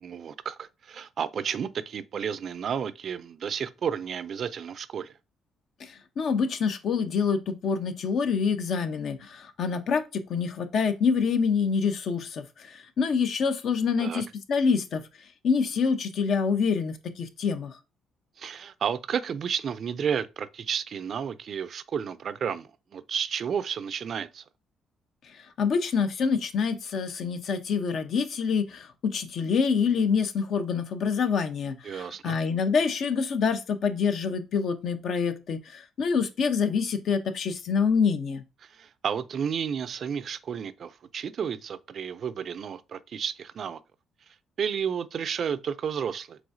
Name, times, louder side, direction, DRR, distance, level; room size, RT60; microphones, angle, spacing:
voice 1, 0.0-5.1 14.0-14.2 18.4-24.4 31.8-32.4 38.6-43.8 44.6-46.4, right 7 dB, 55° right, 0.4 m, -32 dB
voice 2, 5.8-15.0 15.4-17.7 25.6-38.4, left 5 dB, 60° left, 0.6 m, -26 dB
4.9 x 3.3 x 2.6 m
cardioid pair, 95°, 0 cm